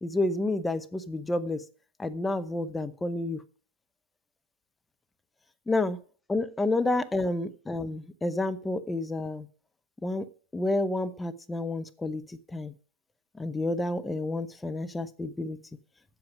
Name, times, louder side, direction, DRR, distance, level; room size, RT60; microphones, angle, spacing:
voice 1, 0.0-1.6 2.0-3.4 5.7-6.0 6.3-9.5 10.0-12.7 13.3-15.6, left 2 dB, 10° left, 0.7 m, -30 dB
7.7 x 7.4 x 7.0 m
figure-of-eight pair, 90°, 0 cm